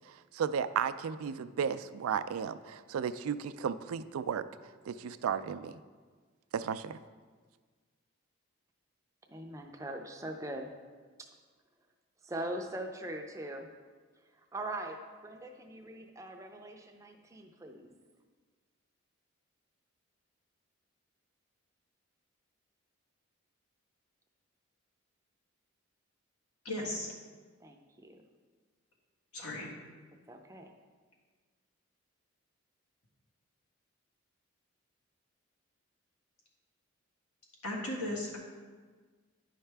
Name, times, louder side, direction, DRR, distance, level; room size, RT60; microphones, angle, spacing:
voice 1, 0.1-4.4 4.9-5.7 6.5-7.0, right 7 dB, 85° right, 13 dB, 0.3 m, -34 dB
voice 2, 9.3-10.7 11.2-11.3 12.2-13.7 14.5-17.9 27.6-28.2 30.3-30.7, right 1 dB, 15° right, 4 dB, 0.5 m, -41 dB
voice 3, 26.7-27.1 29.3-29.7 37.6-38.4, left 1 dB, 90° left, -3 dB, 1.7 m, -36 dB
9.7 x 5.6 x 3.3 m, 1.5 s
head